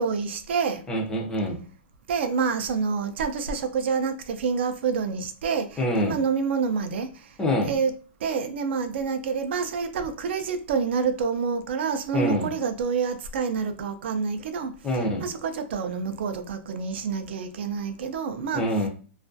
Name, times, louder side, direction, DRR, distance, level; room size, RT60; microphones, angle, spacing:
voice 1, 0.0-0.8 2.1-7.3 7.7-7.9 8.2-14.7 15.2-18.9, right 5 dB, 60° right, 0.4 m, -27 dB
voice 2, 0.9-1.6 5.8-6.2 7.4-7.7 12.1-12.5 14.8-15.3 18.5-18.9, equal, 10° left, 0.4 m, -25 dB
2.3 x 2.2 x 2.5 m
hypercardioid pair, 165°, 7 cm